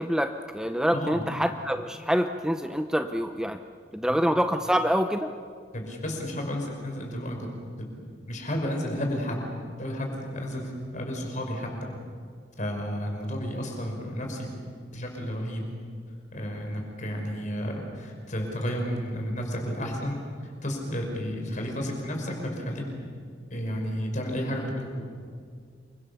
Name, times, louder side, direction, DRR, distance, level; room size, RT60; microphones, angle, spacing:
voice 1, 0.0-3.6 3.9-5.3, equal, 5° right, 7 dB, 0.7 m, -26 dB
voice 2, 0.9-1.3 4.1-4.2 5.7-7.5 7.8-9.4 9.8-11.7 12.6-14.5 14.9-15.6 16.3-22.8 23.5-25.0, equal, 45° left, 2 dB, 5.7 m, -32 dB
28.5 x 24.0 x 6.9 m, 2.1 s
head